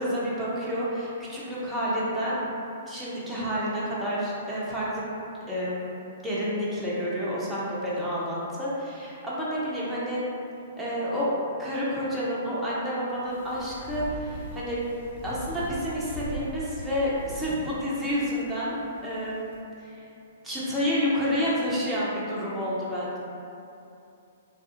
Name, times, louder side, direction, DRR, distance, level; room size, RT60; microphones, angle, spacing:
voice 1, 0.0-2.4 2.9-5.0 5.5-5.9 6.2-10.2 10.8-11.3 11.6-14.8 15.2-19.5 19.8-20.0 20.4-23.2, equal, 5° right, -9 dB, 0.6 m, -29 dB
sound 1, 13.1-19.5, right 1 dB, 60° left, 0.9 m, -41 dB
2.4 x 2.3 x 2.6 m, 2.6 s
figure-of-eight pair, 115°, 0 cm